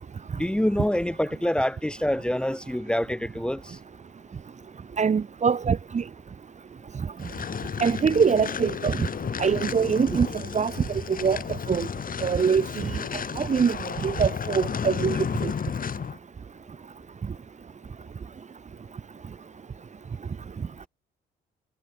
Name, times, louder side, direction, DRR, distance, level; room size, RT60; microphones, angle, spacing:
voice 1, 0.3-3.8, left 1 dB, 5° left, 3.5 m, -26 dB
voice 2, 5.0-6.0 7.8-8.9 9.4-10.3 10.5-10.7 11.1-11.4 11.7-11.9 12.2-12.9 13.4-13.8 14.0-15.5, right 6 dB, 35° right, 1.4 m, -23 dB
sound 1, 7.2-16.2, left 7 dB, 45° left, 2.8 m, -33 dB
cardioid pair, 90°, 20 cm